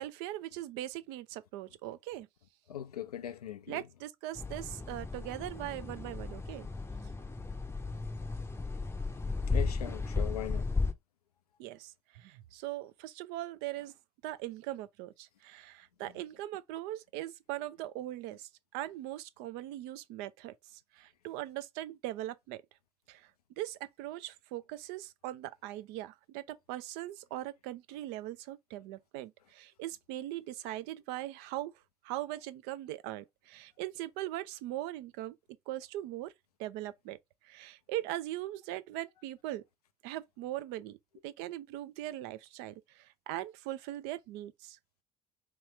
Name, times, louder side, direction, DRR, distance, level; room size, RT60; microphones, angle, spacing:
voice 1, 0.0-2.3 3.7-6.7 11.6-13.9 14.2-22.6 23.1-23.3 23.6-31.7 32.0-35.4 35.7-36.3 36.6-37.2 37.4-39.6 40.0-41.0 41.2-44.8, right 14 dB, 60° right, 0.5 m, -40 dB
voice 2, 2.7-3.8 9.5-10.6, left 11 dB, 85° left, 0.4 m, -40 dB
sound 1, 4.4-10.9, left 3 dB, 15° left, 0.6 m, -35 dB
3.1 x 3.0 x 3.2 m
figure-of-eight pair, 55°, 19 cm